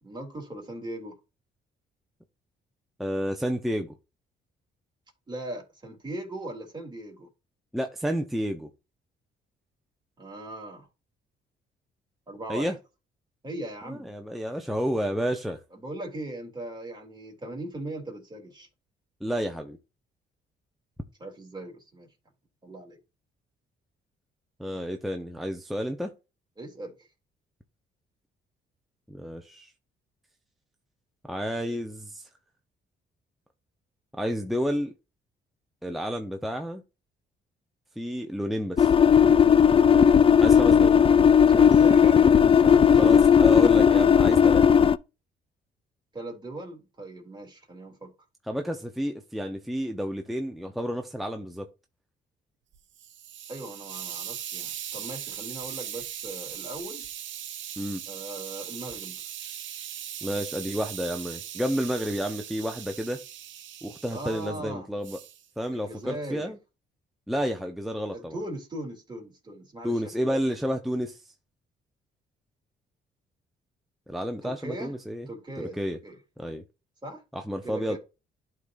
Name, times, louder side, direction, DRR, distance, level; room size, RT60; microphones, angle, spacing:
voice 1, 0.0-1.2 5.3-7.3 10.2-10.9 12.3-12.7 13.4-14.1 15.7-18.7 21.2-22.1 22.6-23.0 26.6-26.9 41.5-43.2 46.1-48.1 53.5-57.1 58.1-59.2 64.1-64.9 65.7-66.5 68.1-70.4 74.4-74.9 75.3-76.2 77.0-77.2 77.6-78.0, right 1 dB, 20° right, 3.1 m, -39 dB
voice 2, 3.0-3.9 7.7-8.7 12.5-12.8 13.9-15.6 19.2-19.8 24.6-26.1 29.1-29.7 31.2-32.3 34.1-34.9 35.8-36.8 38.0-38.9 40.4-41.0 42.9-44.6 48.4-51.7 57.8-58.0 60.2-63.2 63.8-65.2 65.6-66.6 67.3-68.4 69.8-71.2 74.1-75.3 75.6-76.0 76.4-76.6 77.3-78.0, equal, ahead, 0.8 m, -30 dB
sound 1, 38.8-45.0, left 7 dB, 30° left, 0.4 m, -17 dB
Hiss, 52.7-64.5 65.0-65.4, right 10 dB, 70° right, 0.9 m, -39 dB
11.5 x 3.9 x 2.6 m
cardioid pair, 90°, 20 cm